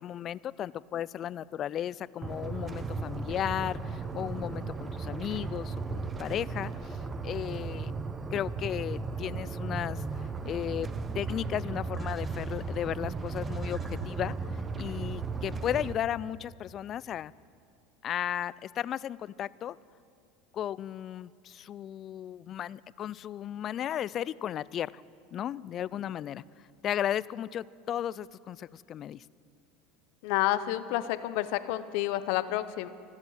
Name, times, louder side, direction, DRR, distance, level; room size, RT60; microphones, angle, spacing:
voice 1, 0.0-7.0 7.2-7.9 8.3-10.9 11.1-14.4 14.8-17.3 18.0-19.8 20.5-25.0 25.3-26.4 26.8-29.2, left 10 dB, 40° left, 21 dB, 0.3 m, -35 dB
sound 1, 2.2-15.9, right 4 dB, 25° right, 0.9 m, -36 dB
voice 2, 30.2-32.9, left 14 dB, 70° left, 14 dB, 0.7 m, -29 dB
24.5 x 8.3 x 6.5 m, 2.3 s
supercardioid pair, 105°, 0 cm